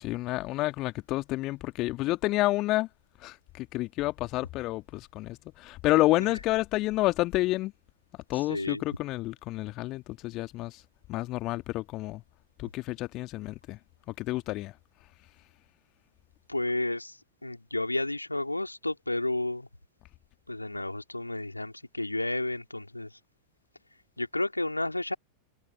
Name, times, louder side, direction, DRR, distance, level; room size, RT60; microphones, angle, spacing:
voice 1, 0.0-2.9 3.2-7.7 8.3-10.8 11.1-12.2 12.6-13.8 14.2-14.7, left 18 dB, 40° left, 2.3 m, -29 dB
voice 2, 8.4-8.8 16.5-19.7 20.5-23.2 24.2-25.1, left 2 dB, 85° left, 2.7 m, -32 dB
figure-of-eight pair, 90°, 0 cm